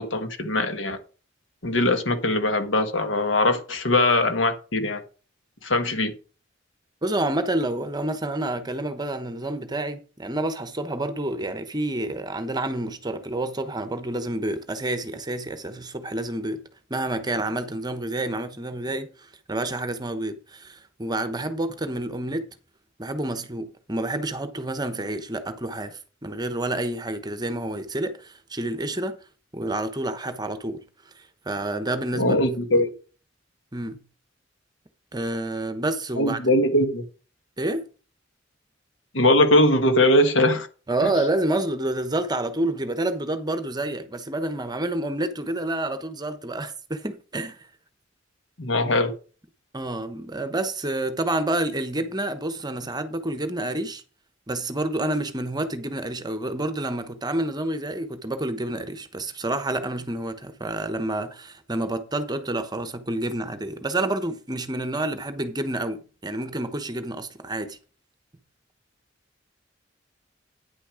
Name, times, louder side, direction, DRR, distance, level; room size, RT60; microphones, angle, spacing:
voice 1, 0.1-1.0 1.6-5.0 5.6-6.1 32.1-32.9 36.2-37.0 39.1-40.7 41.0-41.1 48.6-49.1, left 1 dB, 75° left, 1.7 m, -21 dB
voice 2, 7.0-16.6 16.9-22.5 23.0-29.1 29.5-30.8 31.2-32.4 33.7-34.0 35.1-36.4 37.6-37.9 40.9-47.7 49.7-54.0 54.5-67.8, right 1 dB, 20° right, 1.0 m, -29 dB
9.6 x 6.1 x 5.0 m
head